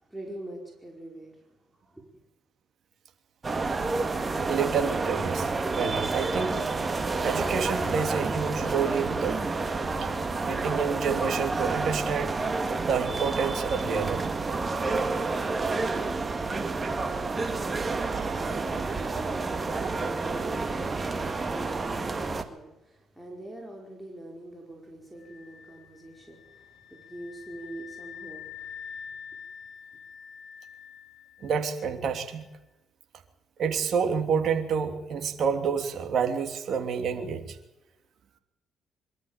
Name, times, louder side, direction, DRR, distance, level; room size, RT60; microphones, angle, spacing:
voice 1, 0.0-2.2 18.5-29.0, right 1 dB, 10° right, -1 dB, 5.0 m, -44 dB
sound 1, 3.4-22.4, right 3 dB, 30° right, 2.0 m, -29 dB
voice 2, 4.5-5.5 5.8-6.6 7.2-9.4 10.0-10.1 10.4-12.4 12.7-14.3 18.0-18.6 31.4-32.4 33.6-37.6, right 6 dB, 65° right, 6 dB, 3.0 m, -29 dB
sound 2, 25.2-32.0, left 7 dB, 50° left, 4.2 m, -46 dB
24.0 x 13.0 x 8.9 m, 0.98 s
cardioid pair, 90°, 0 cm